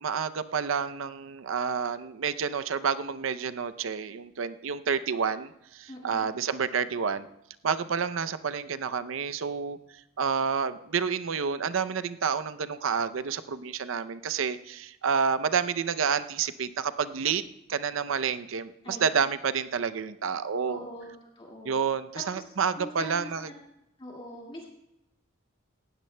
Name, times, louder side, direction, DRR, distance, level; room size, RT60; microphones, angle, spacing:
voice 1, 0.0-7.3 7.6-9.8 10.2-17.4 17.7-20.8 21.6-23.5, right 6 dB, 75° right, 12 dB, 0.6 m, -29 dB
voice 2, 5.9-6.4 18.8-19.0 20.7-21.8 22.1-22.4 22.8-23.5 24.0-24.6, left 1 dB, 25° left, -2 dB, 2.0 m, -42 dB
18.5 x 15.5 x 2.2 m, 0.86 s
head